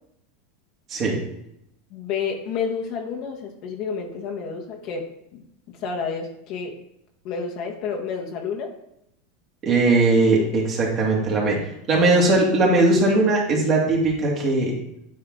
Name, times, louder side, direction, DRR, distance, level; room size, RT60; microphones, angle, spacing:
voice 1, 1.9-5.4 5.8-6.8 7.2-8.7, left 5 dB, 55° left, 1 dB, 1.3 m, -30 dB
voice 2, 9.6-11.6 11.9-14.7, right 2 dB, 40° right, -2 dB, 2.2 m, -19 dB
8.6 x 3.6 x 3.7 m, 0.79 s
supercardioid pair, 115°, 0 cm